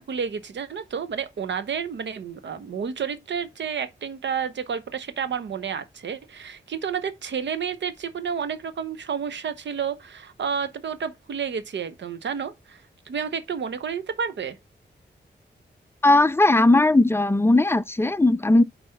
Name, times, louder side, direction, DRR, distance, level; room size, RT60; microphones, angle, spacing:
voice 1, 0.0-12.8 13.1-14.6, right 7 dB, 80° right, 0.9 m, -30 dB
voice 2, 16.0-18.6, left 2 dB, 15° left, 0.5 m, -18 dB
5.7 x 4.1 x 5.6 m
cardioid pair, 70°, 18 cm